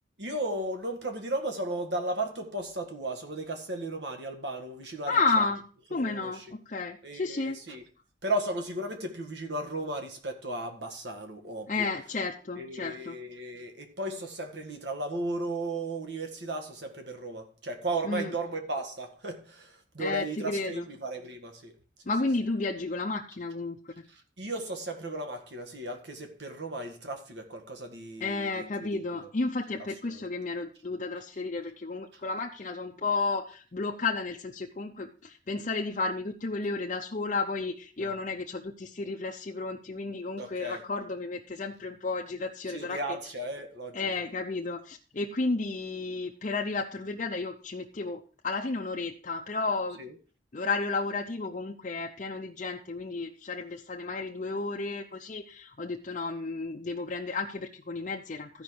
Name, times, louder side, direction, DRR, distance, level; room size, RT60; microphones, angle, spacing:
voice 1, 0.2-5.4 5.9-6.5 7.0-7.8 8.2-11.9 12.6-21.7 24.1-29.3 30.0-30.2 32.1-32.2 38.0-38.2 40.4-40.8 42.6-44.2 50.0-50.1, right 2 dB, 70° right, 1.7 m, -35 dB
voice 2, 5.1-5.6 5.9-7.6 11.7-13.2 18.1-18.3 20.0-20.9 22.1-24.1 28.2-43.0 43.9-50.0 50.5-58.6, left 3 dB, 40° left, 0.6 m, -32 dB
14.0 x 5.3 x 4.6 m
head